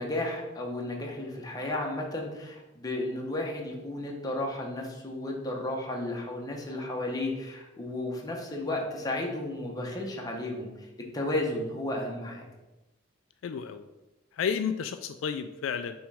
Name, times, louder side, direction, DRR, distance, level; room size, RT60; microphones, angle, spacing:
voice 1, 0.0-10.9 11.1-12.5, left 1 dB, 20° left, 0 dB, 1.0 m, -33 dB
voice 2, 13.4-13.8 14.4-16.1, left 7 dB, 75° left, 9 dB, 0.3 m, -31 dB
6.1 x 3.2 x 4.8 m, 1.0 s
head